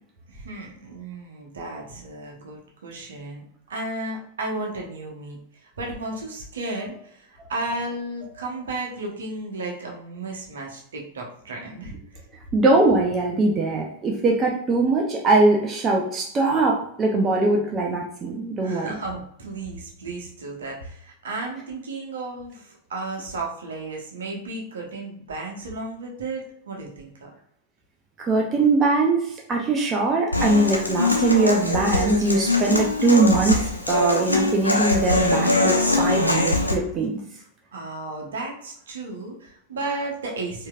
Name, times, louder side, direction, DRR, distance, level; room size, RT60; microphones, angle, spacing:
voice 1, 0.3-3.4 3.7-12.2 18.6-27.3 37.7-40.7, right 2 dB, 65° right, 0 dB, 1.0 m, -34 dB
voice 2, 12.5-18.9 28.2-37.2, right 3 dB, 25° right, 0 dB, 0.6 m, -21 dB
Human voice / Acoustic guitar, 30.3-36.7, left 2 dB, 85° left, 0.6 m, -22 dB
4.4 x 2.8 x 2.4 m, 0.69 s
figure-of-eight pair, 90°, 0 cm